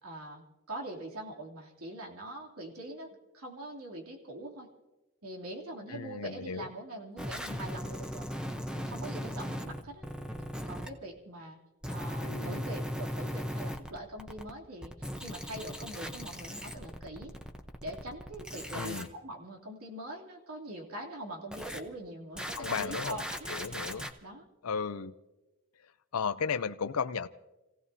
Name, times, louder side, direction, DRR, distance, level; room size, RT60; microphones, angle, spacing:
voice 1, 0.0-3.1 3.3-4.7 5.2-8.3 8.7-10.1 10.7-11.6 11.9-17.3 17.8-23.5 23.8-24.4, right 1 dB, 90° right, 0 dB, 3.0 m, -43 dB
voice 2, 5.9-6.7 12.2-12.6 18.7-19.1 22.6-23.2 23.5-24.1 24.6-25.1 26.1-27.3, left 6 dB, 90° left, 10 dB, 0.6 m, -34 dB
sound 1, 7.2-10.9 11.8-14.5 14.8-19.1 21.5-21.8 22.4-24.1, equal, 5° right, 0.8 m, -38 dB
29.5 x 16.5 x 2.8 m, 1.0 s
head